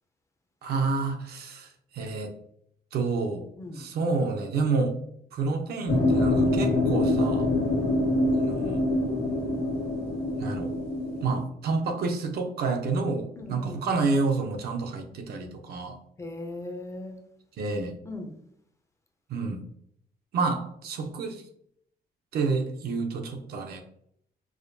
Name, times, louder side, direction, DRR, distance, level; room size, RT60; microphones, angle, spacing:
voice 1, 0.6-2.3 2.9-3.5 3.7-5.0 5.3-7.5 8.3-8.8 10.4-10.7 11.2-16.0 17.6-17.9 19.3-19.6 20.3-21.4 22.3-23.8, right 4 dB, 75° right, 4 dB, 0.6 m, -29 dB
voice 2, 3.6-3.9 7.7-8.0 13.4-14.0 16.2-17.2 18.0-18.3, left 1 dB, 20° left, 4 dB, 0.4 m, -38 dB
sound 1, 5.9-11.4, left 2 dB, 75° left, 1.2 m, -25 dB
4.8 x 2.2 x 2.6 m, 0.69 s
cardioid pair, 165°, 16 cm